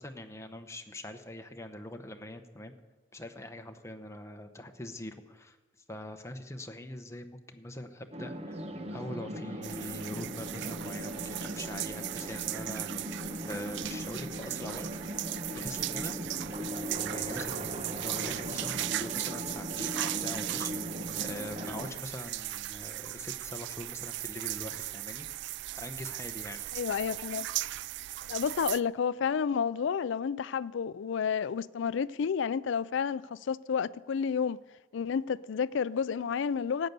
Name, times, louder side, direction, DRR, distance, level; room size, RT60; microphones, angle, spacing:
voice 1, 0.0-2.7 3.1-5.6 5.9-8.6 8.9-14.9 15.6-16.2 17.1-20.9 21.2-25.3 25.7-26.7, left 1 dB, 15° left, 0.9 m, -43 dB
sound 1, 8.1-21.9, equal, 35° right, 1.0 m, -39 dB
sound 2, 9.6-28.8, right 15 dB, 65° right, 0.3 m, -37 dB
voice 2, 26.7-27.5 28.3-34.6 34.9-36.9, left 6 dB, 70° left, 0.4 m, -30 dB
13.5 x 9.2 x 6.8 m
head